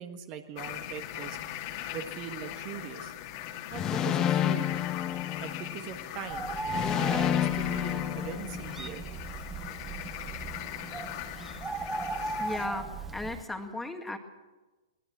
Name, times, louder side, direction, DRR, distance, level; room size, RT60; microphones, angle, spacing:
voice 1, 0.0-1.4 1.9-3.1 3.7-4.8 5.4-6.5 7.1-9.0, right 8 dB, 35° right, 7 dB, 1.5 m, -41 dB
sound 1, 0.6-12.7, left 12 dB, 40° left, 2.0 m, -40 dB
sound 2, 3.7-5.9 6.7-8.9, left 11 dB, 25° left, 1.2 m, -29 dB
Bird, 6.3-13.4, right 3 dB, 10° right, 1.3 m, -37 dB
voice 2, 12.4-14.2, left 2 dB, 5° left, 5 dB, 1.9 m, -36 dB
22.0 x 18.5 x 6.3 m, 1.2 s
figure-of-eight pair, 115°, 2 cm